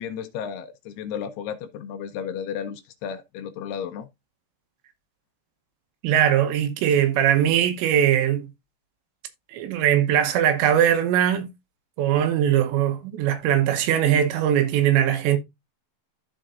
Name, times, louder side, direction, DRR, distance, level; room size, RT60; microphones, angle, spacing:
voice 1, 0.0-4.1, left 8 dB, 80° left, 2.5 m, -33 dB
voice 2, 6.0-8.5 9.5-11.5 12.0-15.4, right 10 dB, 90° right, 3.3 m, -20 dB
13.0 x 4.9 x 2.5 m
omnidirectional pair, 5.0 m